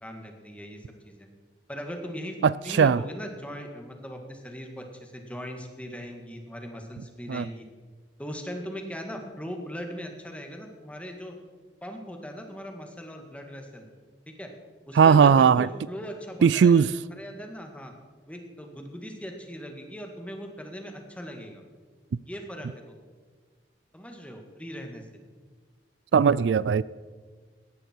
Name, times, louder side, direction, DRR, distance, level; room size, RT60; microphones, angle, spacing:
voice 1, 0.0-1.3 1.7-2.4 2.6-7.7 8.2-11.4 11.8-13.9 14.3-14.5 14.9-16.8 17.2-17.9 18.3-21.6 22.2-23.0 23.9-25.1, equal, 5° left, 3 dB, 1.9 m, -39 dB
voice 2, 2.4-3.0 7.3-7.5 15.0-15.7 16.4-16.9 26.1-26.8, right 6 dB, 75° right, 20 dB, 0.3 m, -18 dB
17.5 x 13.0 x 4.6 m, 1.5 s
head